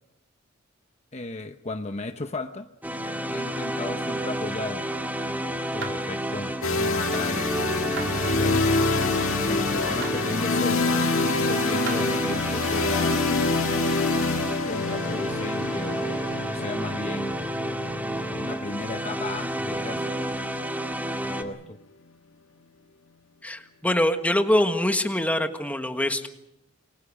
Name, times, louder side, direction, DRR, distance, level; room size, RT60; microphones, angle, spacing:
voice 1, 1.1-2.7 3.2-4.9 5.2-8.7 9.5-13.2 14.4-17.5 18.3-20.5 21.2-21.8, left 2 dB, 35° left, 8 dB, 0.9 m, -36 dB
sound 1, 2.8-21.4, equal, 10° right, 1.9 m, -30 dB
sound 2, 5.8-6.0 8.0-8.2 10.0-10.2 11.9-12.0, right 5 dB, 60° right, 3.6 m, -34 dB
sound 3, 6.6-20.5, left 3 dB, 80° left, 1.8 m, -27 dB
voice 2, 23.4-26.3, left 1 dB, 5° left, 7 dB, 1.5 m, -24 dB
29.0 x 22.5 x 5.0 m, 0.86 s
head